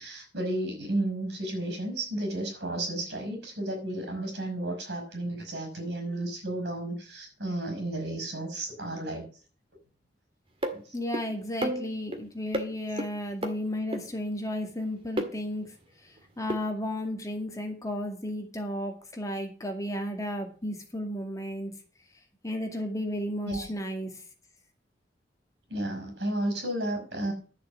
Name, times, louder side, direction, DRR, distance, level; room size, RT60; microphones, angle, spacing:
voice 1, 0.0-9.3 10.7-11.0 23.5-23.7 25.7-27.3, right 1 dB, 70° right, 5 dB, 5.8 m, -32 dB
sound 1, 10.6-10.8 11.1-11.2 11.6-12.2 12.5-12.7 13.0-13.1 13.4-13.5 13.9-14.0 15.2-15.3 16.5-16.6, right 1 dB, 30° right, 1.9 m, -30 dB
voice 2, 10.9-15.7 16.0-21.7 22.4-24.1, left 1 dB, 20° left, 3 dB, 2.1 m, -33 dB
12.0 x 7.2 x 7.5 m, 0.39 s
head